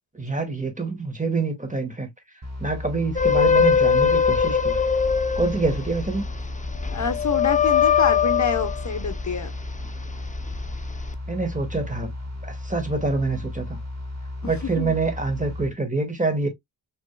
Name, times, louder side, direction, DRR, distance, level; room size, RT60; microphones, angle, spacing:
voice 1, 0.1-2.1 2.6-4.8 5.4-6.2 11.3-12.1 12.4-13.8 14.4-16.5, right 3 dB, 15° right, 2.0 m, -26 dB
sound 1, 2.4-15.7, left 1 dB, 35° right, 2.3 m, -34 dB
sound 2, 3.2-9.8 10.3-11.1, left 7 dB, 15° left, 0.7 m, -22 dB
voice 2, 6.9-9.5 14.6-14.9, left 5 dB, 40° left, 1.0 m, -27 dB
6.3 x 3.5 x 2.3 m
cardioid pair, 50°, 44 cm